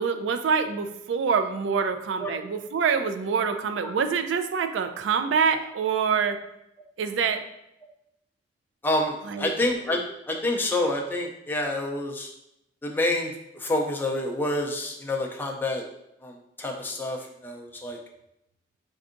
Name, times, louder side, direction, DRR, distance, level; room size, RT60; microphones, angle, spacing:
voice 1, 0.0-6.4 7.0-7.4 9.3-9.5, right 6 dB, 80° right, 8 dB, 0.3 m, -25 dB
voice 2, 8.8-10.0 10.3-12.3 12.8-15.8 16.2-18.0, left 1 dB, 10° left, 0 dB, 0.4 m, -28 dB
4.5 x 2.6 x 2.5 m, 0.82 s
head